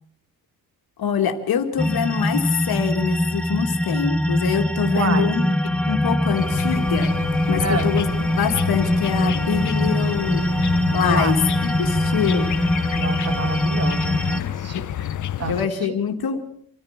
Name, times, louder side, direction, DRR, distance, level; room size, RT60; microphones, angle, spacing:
voice 1, 1.0-5.6 5.9-7.1 7.5-8.1 8.4-10.5 10.9-12.5 14.4-15.1 15.5-16.4, left 7 dB, 75° left, 6 dB, 2.4 m, -25 dB
sound 1, 1.8-14.4, left 1 dB, 5° left, 1.0 m, -22 dB
voice 2, 4.9-5.3 7.6-7.9 11.0-11.3 12.9-14.9 15.4-15.6, right 4 dB, 40° right, 9 dB, 1.9 m, -28 dB
sound 2, 6.3-15.6, left 10 dB, 50° left, 0.9 m, -29 dB
26.5 x 14.0 x 7.4 m, 0.65 s
wide cardioid pair, 165°, 37 cm